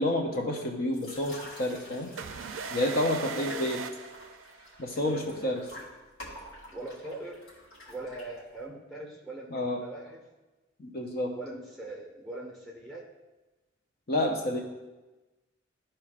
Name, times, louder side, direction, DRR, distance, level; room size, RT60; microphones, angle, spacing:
voice 1, 0.0-2.1 2.7-3.8 4.8-5.6 9.5-9.8 10.8-11.4 14.1-14.6, left 1 dB, 45° left, 1 dB, 0.7 m, -29 dB
sound 1, 0.9-8.7, left 1 dB, 80° left, 2.4 m, -49 dB
sound 2, 2.2-5.0, right 5 dB, 70° right, 0.4 m, -39 dB
voice 2, 3.3-3.7 5.0-5.8 6.7-7.4 7.9-10.2 11.3-13.1, right 2 dB, ahead, -2 dB, 1.1 m, -42 dB
13.0 x 4.4 x 2.5 m, 1.1 s
head